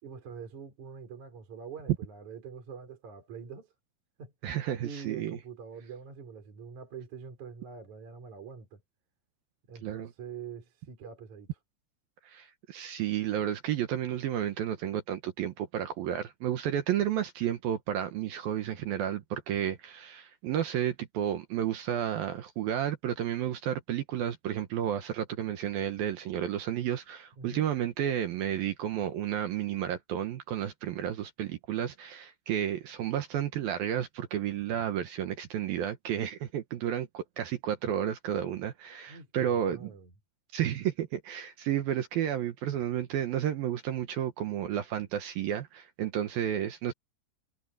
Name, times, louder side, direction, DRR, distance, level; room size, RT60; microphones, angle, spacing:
voice 1, 0.0-3.7 4.2-4.3 4.8-8.8 9.7-11.5 27.4-27.7 39.1-40.1, right 6 dB, 40° right, 5.1 m, -45 dB
voice 2, 4.4-5.4 9.8-10.1 12.3-39.9 40.5-46.9, right 10 dB, 70° right, 2.5 m, -32 dB
omnidirectional pair, 5.2 m